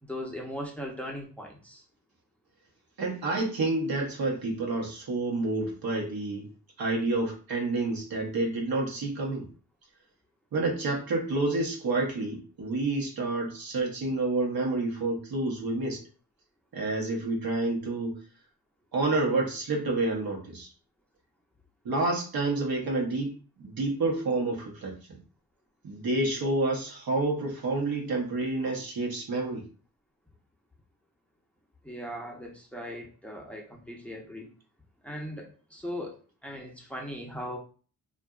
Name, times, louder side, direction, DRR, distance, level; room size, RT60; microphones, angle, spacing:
voice 1, 0.0-1.8 31.8-34.5 35.0-37.6, equal, 5° left, -1 dB, 0.7 m, -39 dB
voice 2, 3.0-6.5 6.8-9.5 10.5-16.0 16.7-18.2 18.9-20.7 21.8-25.2 25.8-29.6, right 2 dB, 65° right, -1 dB, 0.9 m, -29 dB
2.6 x 2.5 x 2.3 m, 0.38 s
cardioid pair, 50°, 39 cm